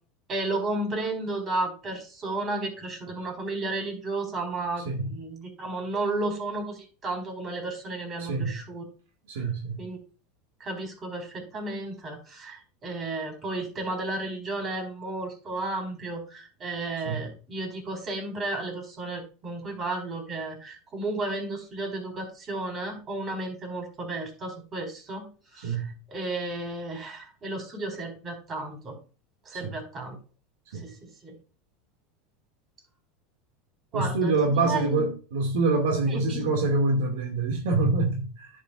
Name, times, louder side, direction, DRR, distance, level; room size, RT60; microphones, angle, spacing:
voice 1, 0.3-8.8 9.3-9.5 9.8-10.0 10.6-29.0 29.4-30.2 30.8-31.4 33.9-35.1 36.1-36.5, right 2 dB, 35° right, 4.4 m, -33 dB
voice 2, 8.2-8.6 9.3-9.8 17.1-17.3 25.6-25.9 29.6-29.7 30.7-30.9 33.9-38.5, right 3 dB, 80° right, 2.2 m, -25 dB
10.5 x 7.6 x 2.5 m
hypercardioid pair, 100°, 0 cm